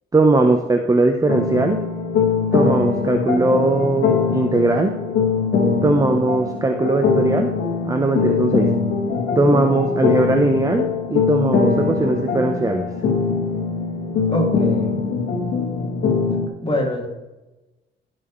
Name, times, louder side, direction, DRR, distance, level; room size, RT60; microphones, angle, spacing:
voice 1, 0.1-1.8 2.5-4.9 5.8-7.5 7.8-8.7 9.4-12.9, right 2 dB, 15° right, 5 dB, 0.8 m, -19 dB
sound 1, 1.3-16.5, left 5 dB, 70° left, 1.8 m, -22 dB
voice 2, 14.3-15.0 16.6-17.1, equal, 25° left, 1 dB, 2.4 m, -23 dB
15.5 x 6.3 x 3.2 m, 1.0 s
cardioid pair, 90°, 20 cm